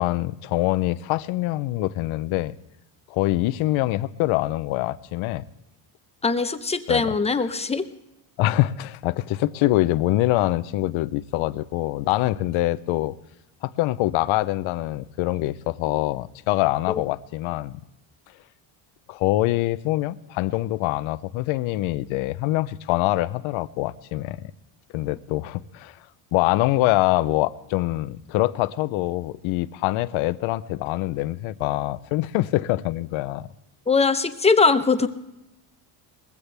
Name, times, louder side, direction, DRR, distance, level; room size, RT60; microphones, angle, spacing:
voice 1, 0.0-2.5 3.1-5.4 6.9-7.1 8.4-13.1 13.6-17.8 19.1-24.5 24.9-26.0 26.3-33.5, left 17 dB, 75° left, 16 dB, 0.8 m, -24 dB
voice 2, 6.2-7.8 16.9-17.0 33.9-35.1, left 4 dB, 15° left, 10 dB, 0.7 m, -21 dB
20.5 x 15.5 x 3.4 m, 0.89 s
cardioid pair, 135°, 49 cm